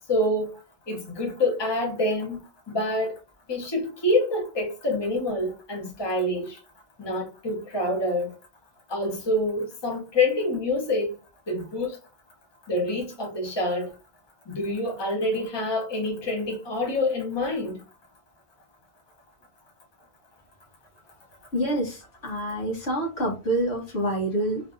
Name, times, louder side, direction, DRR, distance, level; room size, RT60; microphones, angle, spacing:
voice 1, 0.1-0.5 0.9-2.4 2.7-3.2 3.5-6.6 7.0-8.3 8.9-11.1 11.5-12.0 12.7-13.9 14.5-17.8, left 1 dB, 20° left, 1.1 m, -26 dB
voice 2, 21.5-24.6, right 1 dB, 60° left, 1.6 m, -27 dB
3.3 x 2.7 x 3.7 m
omnidirectional pair, 1.2 m